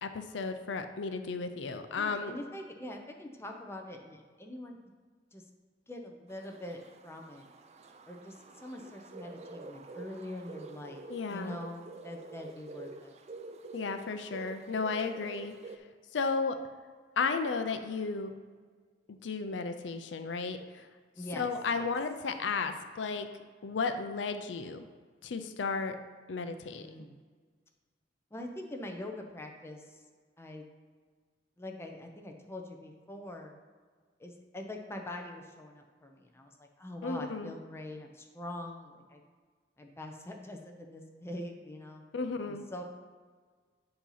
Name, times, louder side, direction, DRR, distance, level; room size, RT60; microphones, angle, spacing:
voice 1, 0.0-2.3 11.1-11.6 13.7-15.5 16.1-16.6 17.2-18.3 19.1-20.9 21.3-23.3 23.6-24.8 25.2-26.0 26.3-27.1 37.0-37.5 42.1-42.7, left 4 dB, 75° left, 8 dB, 0.5 m, -34 dB
voice 2, 2.0-4.8 5.3-5.4 5.9-7.5 8.1-13.2 21.2-21.5 21.7-21.9 26.8-27.2 28.3-30.0 30.4-30.7 31.6-33.6 34.2-39.2 39.8-42.0 42.5-42.8, left 1 dB, 15° left, 2 dB, 0.7 m, -44 dB
sound 1, 6.3-15.8, right 3 dB, 35° right, 0.4 m, -48 dB
8.5 x 2.9 x 5.6 m, 1.6 s
head